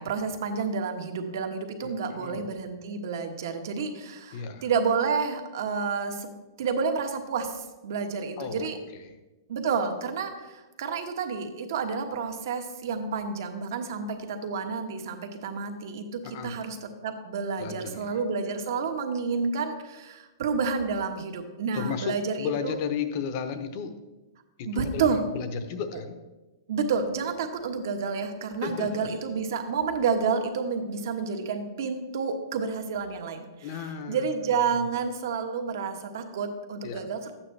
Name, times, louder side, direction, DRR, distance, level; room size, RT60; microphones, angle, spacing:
voice 1, 0.0-6.3 6.6-8.8 9.5-22.7 24.7-25.2 26.7-33.5 34.1-37.3, right 5 dB, 55° right, 6 dB, 1.2 m, -30 dB
voice 2, 1.8-2.5 4.3-4.7 8.4-9.2 16.2-16.5 17.6-18.2 21.7-23.9 24.6-26.2 28.6-29.1 33.6-34.4 36.8-37.1, left 6 dB, 35° left, 9 dB, 0.8 m, -34 dB
12.0 x 8.7 x 3.3 m, 1.1 s
hypercardioid pair, 165°, 2 cm